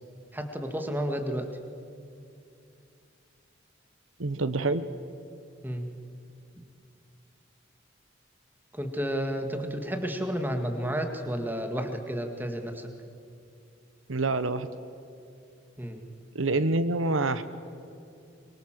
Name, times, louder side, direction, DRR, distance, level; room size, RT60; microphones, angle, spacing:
voice 1, 0.3-1.5 5.6-5.9 8.7-12.9 15.8-16.0, equal, 10° right, 5 dB, 2.0 m, -31 dB
voice 2, 4.2-4.9 14.1-14.7 16.3-17.4, right 2 dB, 90° right, 12 dB, 1.1 m, -26 dB
24.0 x 23.5 x 7.7 m, 2.6 s
head